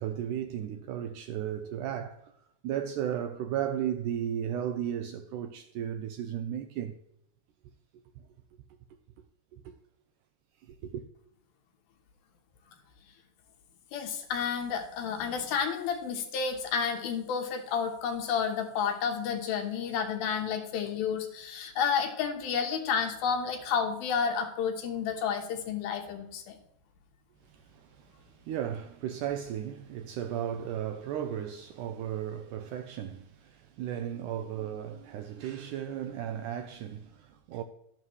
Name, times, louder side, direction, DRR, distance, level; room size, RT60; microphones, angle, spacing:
voice 1, 0.0-2.3 2.6-6.9 7.9-8.0 8.5-8.6 9.5-9.8 10.6-11.0 27.4-37.6, right 10 dB, 90° right, 1.8 m, -35 dB
voice 2, 13.9-26.6, left 6 dB, 80° left, 3.0 m, -31 dB
12.0 x 11.5 x 3.2 m
omnidirectional pair, 4.2 m